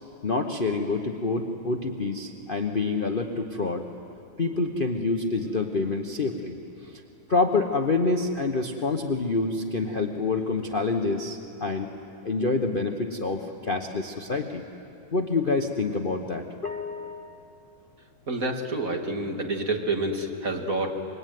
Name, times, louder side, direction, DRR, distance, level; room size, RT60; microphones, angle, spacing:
voice 1, 0.2-3.9 4.4-6.6 6.8-7.0 7.3-11.9 12.2-14.6 15.1-17.4, left 3 dB, 35° left, 4 dB, 1.0 m, -27 dB
voice 2, 18.3-20.9, right 2 dB, 45° right, 2 dB, 2.6 m, -28 dB
26.0 x 23.5 x 9.4 m, 2.7 s
omnidirectional pair, 2.2 m